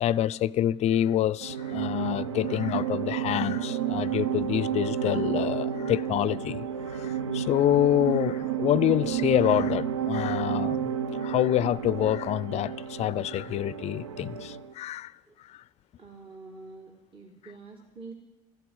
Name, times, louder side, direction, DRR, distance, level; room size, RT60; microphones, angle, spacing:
voice 1, 0.0-6.6 7.3-10.9 11.2-15.1, left 12 dB, 45° left, 0.4 m, -26 dB
sound 1, 1.4-14.7, right 8 dB, 90° right, 0.6 m, -31 dB
voice 2, 16.0-18.1, right 3 dB, 35° right, 2.0 m, -46 dB
13.5 x 8.3 x 9.6 m
hypercardioid pair, 65°, 16 cm